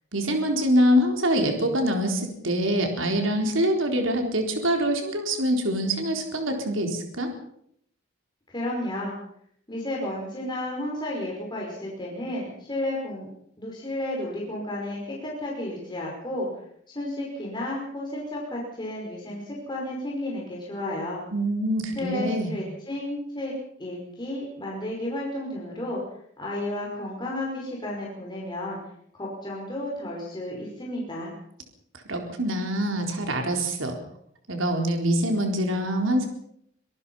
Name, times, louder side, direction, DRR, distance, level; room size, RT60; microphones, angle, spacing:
voice 1, 0.1-7.3 21.3-22.6 32.1-34.0 34.5-36.3, equal, 90° right, 3 dB, 4.0 m, -24 dB
voice 2, 8.5-9.1 9.7-13.3 13.6-16.5 16.9-21.2 22.0-23.5 23.8-26.0 26.4-28.8 29.1-31.3, left 1 dB, 25° left, -3 dB, 5.4 m, -32 dB
25.5 x 18.5 x 5.6 m, 0.70 s
head